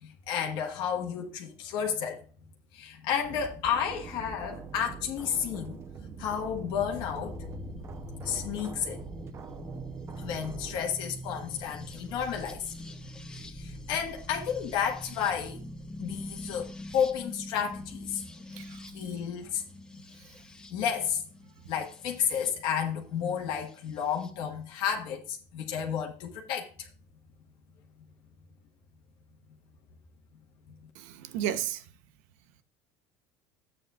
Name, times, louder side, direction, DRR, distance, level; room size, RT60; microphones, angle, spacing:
voice 1, 0.0-2.2 2.7-5.8 6.2-7.4 8.2-9.0 10.2-12.7 13.3-15.6 16.0-18.2 18.9-19.6 20.7-21.2 21.7-26.9, left 8 dB, 60° left, 1.5 m, -32 dB
sound 1, 3.2-10.8, right 6 dB, 30° right, 0.7 m, -44 dB
sound 2, 6.8-22.5 23.7-24.3, left 1 dB, 10° left, 0.8 m, -44 dB
voice 2, 18.5-18.8 31.0-31.8, right 11 dB, 80° right, 0.9 m, -33 dB
11.5 x 8.5 x 2.4 m
cardioid pair, 155°, 9 cm